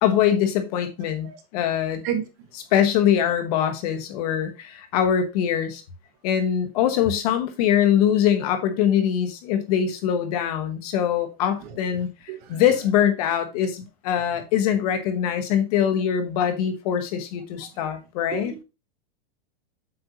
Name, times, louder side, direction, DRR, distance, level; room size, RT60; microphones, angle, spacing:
voice 1, 0.0-2.0 2.7-5.8 6.2-12.1 12.5-18.5, left 9 dB, 40° left, 1.2 m, -23 dB
voice 2, 1.7-2.3 11.6-11.8 12.3-12.6 17.6-17.9 18.3-18.6, right 9 dB, 30° right, 0.9 m, -33 dB
7.9 x 5.6 x 2.8 m
supercardioid pair, 175°, 30 cm